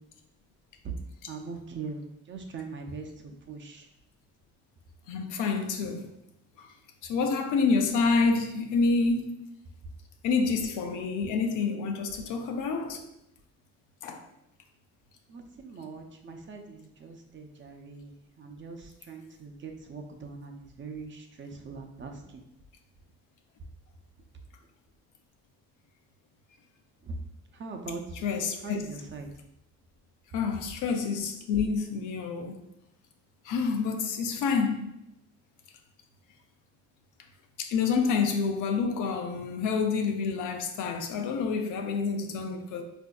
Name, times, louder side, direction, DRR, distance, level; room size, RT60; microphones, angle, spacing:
voice 1, 1.3-3.9 15.3-22.4 27.0-27.2 27.5-28.0 28.6-29.3, right 4 dB, 40° right, 0.6 m, -41 dB
voice 2, 5.1-6.1 7.1-9.5 10.2-13.0 14.0-14.2 28.2-28.8 30.3-32.6 33.5-34.9 37.6-42.8, left 4 dB, 90° left, 0.5 m, -28 dB
4.2 x 2.6 x 2.3 m
cardioid pair, 90°, 30 cm